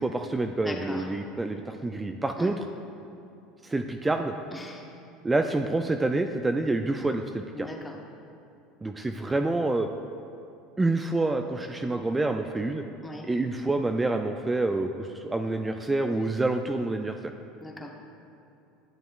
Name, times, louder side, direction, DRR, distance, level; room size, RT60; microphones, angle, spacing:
voice 1, 0.0-2.5 3.6-4.3 5.2-7.7 8.8-9.9 10.8-12.8 13.3-17.3, right 2 dB, 15° right, 5 dB, 0.3 m, -27 dB
voice 2, 0.6-1.1 2.4-2.5 4.5-4.9 7.5-8.0 13.0-13.3 17.6-17.9, left 1 dB, 10° left, 1 dB, 1.0 m, -39 dB
11.0 x 7.0 x 2.3 m, 2.8 s
supercardioid pair, 100°, 0 cm